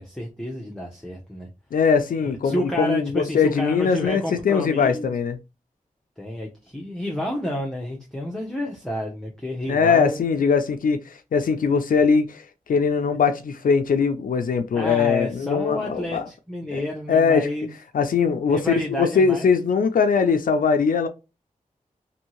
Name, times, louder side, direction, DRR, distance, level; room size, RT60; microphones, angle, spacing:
voice 1, 0.0-1.5 2.4-5.1 6.2-10.2 14.7-17.7 18.5-19.6, left 1 dB, 5° left, 0.7 m, -30 dB
voice 2, 1.7-5.4 9.7-16.2 16.7-16.8 17.1-17.5 17.9-21.1, left 5 dB, 75° left, 0.4 m, -21 dB
2.7 x 2.7 x 2.9 m
cardioid pair, 55°, 14 cm